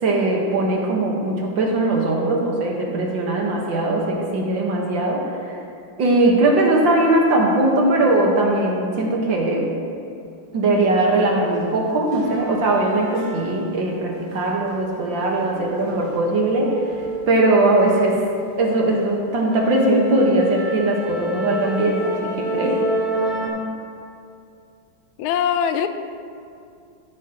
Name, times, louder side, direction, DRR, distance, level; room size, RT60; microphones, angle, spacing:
voice 1, 0.0-5.6 6.0-9.7 10.5-16.8 17.3-18.2 18.6-22.8, right 2 dB, 65° right, -1 dB, 2.0 m, -20 dB
sound 1, 11.0-11.1 11.5-13.9 14.2-18.0 18.4-18.6 19.0-19.1 19.5-23.5, right 1 dB, 45° right, 2.7 m, -30 dB
voice 2, 25.2-25.9, left 8 dB, 85° left, 9 dB, 1.4 m, -21 dB
14.0 x 10.0 x 2.9 m, 2.5 s
omnidirectional pair, 2.3 m